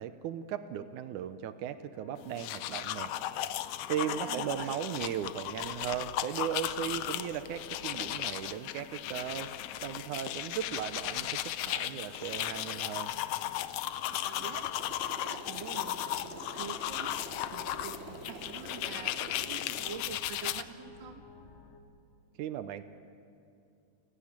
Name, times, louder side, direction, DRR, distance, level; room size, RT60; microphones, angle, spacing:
voice 1, 0.0-3.1 3.9-9.5 9.8-13.1 22.4-22.9, right 10 dB, 80° right, 11 dB, 2.2 m, -37 dB
sound 1, 1.9-21.8, left 4 dB, 60° left, 2.7 m, -54 dB
sound 2, 2.2-20.6, left 12 dB, 90° left, 1.3 m, -36 dB
voice 2, 4.0-4.7 14.2-14.7 15.2-21.2, right 8 dB, 55° right, 7 dB, 1.4 m, -46 dB
Motorcycle, 14.0-19.8, right 1 dB, 20° right, 3.8 m, -47 dB
29.0 x 16.5 x 8.8 m, 2.5 s
omnidirectional pair, 3.6 m